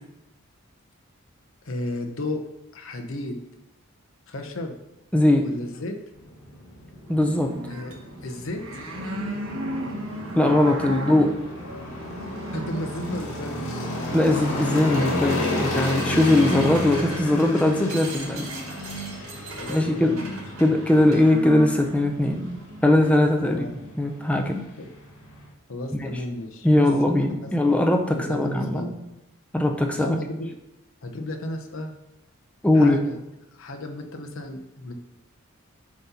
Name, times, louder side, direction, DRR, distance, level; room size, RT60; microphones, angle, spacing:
voice 1, 1.6-2.4 2.7-3.4 4.3-4.7 5.4-6.0 7.7-8.8 12.5-13.9 19.6-20.4 23.4-23.8 24.8-24.9 25.7-26.9 27.4-27.5 28.1-28.9 30.0-30.5 31.0-31.9 32.7-33.1 33.5-34.9, left 1 dB, 65° left, 4 dB, 0.7 m, -33 dB
voice 2, 5.1-5.5 7.1-7.5 10.3-11.3 14.1-18.5 19.7-20.2 20.6-22.4 22.8-23.7 24.0-24.6 25.9-26.1 26.6-28.9 29.5-30.2 32.6-33.0, left 1 dB, 5° left, 4 dB, 0.5 m, -20 dB
sound 1, 6.1-25.5, left 1 dB, 85° left, 2.0 m, -33 dB
sound 2, 7.1-23.1, right 1 dB, 70° right, 1.1 m, -37 dB
sound 3, 14.4-14.6 14.9-21.3, right 3 dB, 90° right, 1.6 m, -40 dB
7.2 x 2.9 x 5.4 m, 0.90 s
head